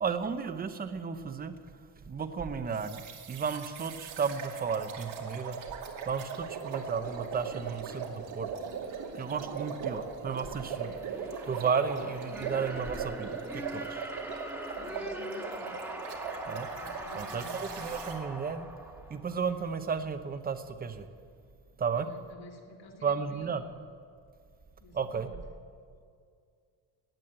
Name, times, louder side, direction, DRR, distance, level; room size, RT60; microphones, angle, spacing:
voice 1, 0.0-1.5 2.1-5.6 6.1-8.5 9.1-10.9 11.4-14.1 16.5-16.7 17.1-18.7 19.1-21.1 21.8-22.1 23.0-23.6 24.9-25.3, right 6 dB, 20° right, 9 dB, 0.7 m, -33 dB
sound 1, 2.7-18.2, right 6 dB, 90° right, 2.4 m, -40 dB
sound 2, 10.7-19.6, right 1 dB, 5° right, 1.5 m, -42 dB
voice 2, 14.8-15.8 16.7-17.6 21.9-23.5 24.8-25.4, left 2 dB, 55° left, 0 dB, 2.5 m, -51 dB
16.5 x 9.2 x 7.9 m, 2.2 s
cardioid pair, 160°, 45 cm